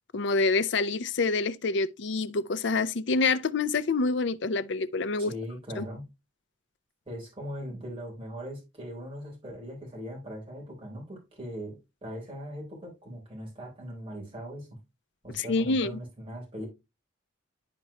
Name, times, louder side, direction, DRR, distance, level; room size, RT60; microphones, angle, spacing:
voice 1, 0.1-5.3 5.8-5.9 15.3-16.0, left 3 dB, 60° left, 0.5 m, -27 dB
voice 2, 5.2-6.1 7.1-14.8 15.2-16.7, equal, 25° right, 3.6 m, -40 dB
11.5 x 4.5 x 2.8 m
head